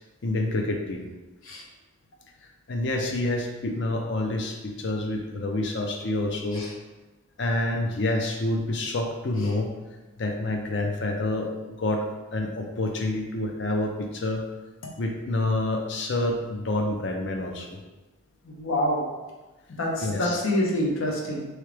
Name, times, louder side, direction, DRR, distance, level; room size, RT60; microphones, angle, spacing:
voice 1, 0.2-1.1 2.7-6.6 7.4-9.7 10.2-12.0 12.3-14.4 15.0-17.8 20.0-20.4, left 2 dB, 55° left, 3 dB, 0.5 m, -28 dB
voice 2, 18.4-19.1 19.8-21.5, left 1 dB, 80° left, -1 dB, 0.8 m, -27 dB
3.7 x 3.2 x 3.3 m, 1.1 s
head